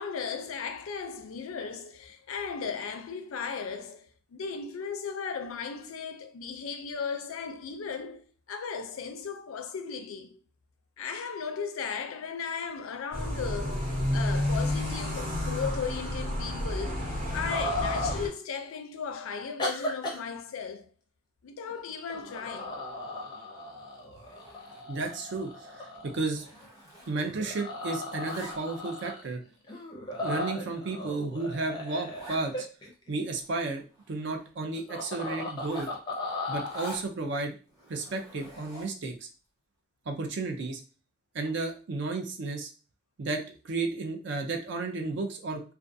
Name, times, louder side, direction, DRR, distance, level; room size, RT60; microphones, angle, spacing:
voice 1, 0.0-10.4 11.0-13.8 14.1-20.9 21.4-22.8, left 6 dB, 75° left, 0.4 m, -36 dB
sound 1, 13.1-18.3, left 1 dB, 70° right, 1.3 m, -30 dB
sound 2, 17.5-18.3 19.6-20.2 21.6-21.8 22.1-26.6 27.2-29.3 29.7-33.3 34.8-36.9, left 2 dB, 20° left, 0.5 m, -36 dB
Zipper (clothing), 24.1-25.2 25.5-25.7 25.9-27.6 27.9-28.9 29.5-29.6 30.2-30.3 30.7-30.8 31.1-31.2 31.4-31.5 32.1-32.5 32.9-33.0 33.2-34.5 35.5-37.1 37.7-39.1, right 1 dB, 15° right, 0.8 m, -49 dB
voice 2, 24.9-26.5 27.1-29.4 30.2-32.7 33.1-35.9 36.5-37.5 37.9-39.3 40.1-40.8 41.3-42.7 43.2-45.6, right 3 dB, 55° right, 0.4 m, -33 dB
2.4 x 2.3 x 2.6 m
head